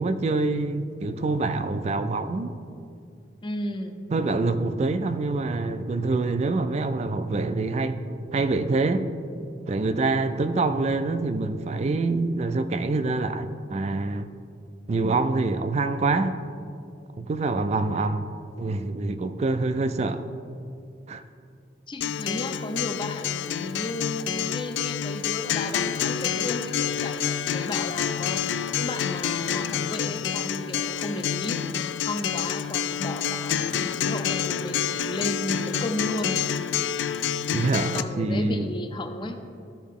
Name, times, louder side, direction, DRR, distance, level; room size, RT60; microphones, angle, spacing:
voice 1, 0.0-2.5 4.1-8.0 8.3-9.1 9.7-14.3 14.9-16.4 17.2-18.3 18.6-20.3 21.1-21.2 37.5-38.7, right 3 dB, 35° right, 11 dB, 0.3 m, -25 dB
voice 2, 3.4-4.0 21.9-28.4 28.7-31.6 32.0-36.6 37.9-39.4, left 1 dB, 25° left, 6 dB, 0.6 m, -34 dB
Acoustic guitar, 22.0-38.0, left 8 dB, 70° left, 0.3 m, -28 dB
13.0 x 4.6 x 3.6 m, 2.4 s
head